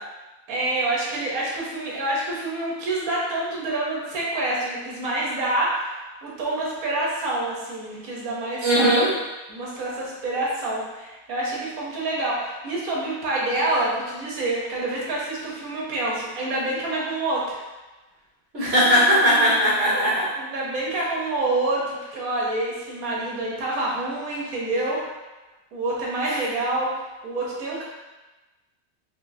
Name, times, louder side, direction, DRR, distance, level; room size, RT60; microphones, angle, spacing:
voice 1, 0.5-9.0 9.5-17.6 18.6-18.8 19.9-20.1 20.4-25.1 25.7-27.8, right 2 dB, 75° right, -5 dB, 1.4 m, -27 dB
voice 2, 8.6-9.1 18.5-20.3, equal, 55° right, -8 dB, 1.6 m, -19 dB
4.4 x 2.8 x 2.6 m, 1.1 s
omnidirectional pair, 1.5 m